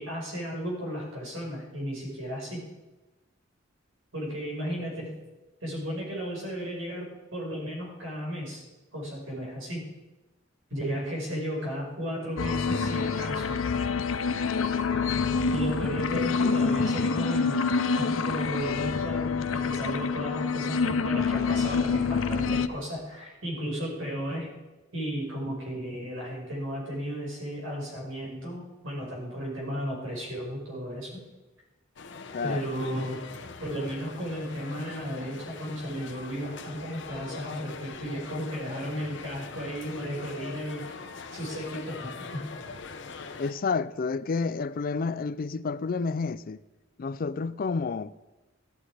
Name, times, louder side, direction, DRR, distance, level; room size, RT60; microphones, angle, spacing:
voice 1, 0.0-2.6 4.1-5.1 5.6-8.6 8.9-9.8 10.7-13.6 15.5-17.6 17.9-24.5 24.9-31.2 32.4-33.2 33.6-40.9 41.3-42.4, equal, 80° right, 5.2 m, -34 dB
sound 1, 12.4-22.7, left 5 dB, 90° left, 0.6 m, -27 dB
sound 2, 32.0-43.5, left 4 dB, 65° left, 1.0 m, -42 dB
voice 2, 32.3-32.7 43.4-46.6 47.0-48.1, left 4 dB, 45° left, 0.4 m, -30 dB
13.5 x 11.5 x 4.9 m
head